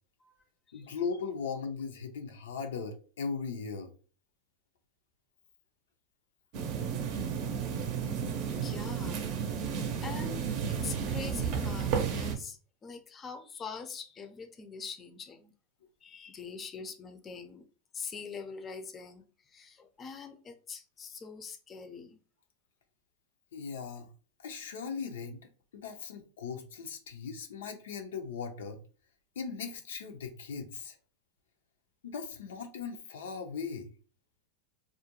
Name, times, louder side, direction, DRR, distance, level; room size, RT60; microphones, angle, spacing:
voice 1, 0.7-3.9 23.5-24.1 24.4-28.8 29.4-31.0 32.0-33.9, left 5 dB, 80° left, 0.5 m, -38 dB
sound 1, 6.5-12.3, right 7 dB, 55° right, 0.5 m, -32 dB
voice 2, 8.3-9.2 10.0-15.5 16.0-17.7 17.9-22.2, left 5 dB, 30° left, 0.5 m, -44 dB
2.4 x 2.1 x 2.8 m
hypercardioid pair, 100°, 0 cm